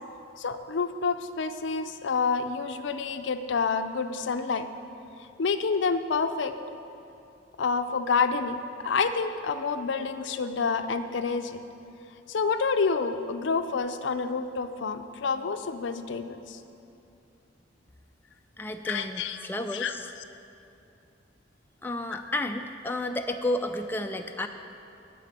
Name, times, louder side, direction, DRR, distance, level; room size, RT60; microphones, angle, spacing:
voice 1, 0.4-4.7 5.4-6.5 7.6-8.6 8.8-11.6 12.3-16.6 18.9-19.5 19.7-20.0 22.1-22.3, left 5 dB, 75° left, 10 dB, 0.5 m, -28 dB
voice 2, 18.6-20.1 21.8-24.5, left 1 dB, 10° left, 5 dB, 0.4 m, -31 dB
12.5 x 4.2 x 8.2 m, 2.7 s
head